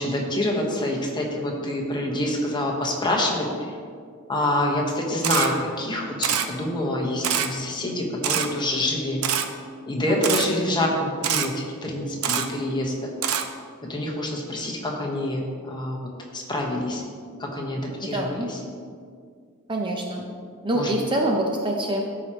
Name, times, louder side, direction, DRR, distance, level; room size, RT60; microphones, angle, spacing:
voice 1, 0.0-3.8 4.3-9.2 9.9-13.1 13.8-17.0 17.4-18.6 20.7-20.9, left 1 dB, 20° left, -1 dB, 1.1 m, -26 dB
Camera, 5.2-5.5 6.2-6.5 7.2-7.5 8.2-8.5 9.2-9.5 10.2-10.5 11.2-11.5 12.2-12.5 13.2-13.4, right 8 dB, 75° right, 0.6 m, -24 dB
voice 2, 18.1-18.5 19.7-20.3 20.6-22.0, right 1 dB, 20° right, 0 dB, 0.6 m, -25 dB
13.5 x 4.9 x 2.9 m, 2.1 s
head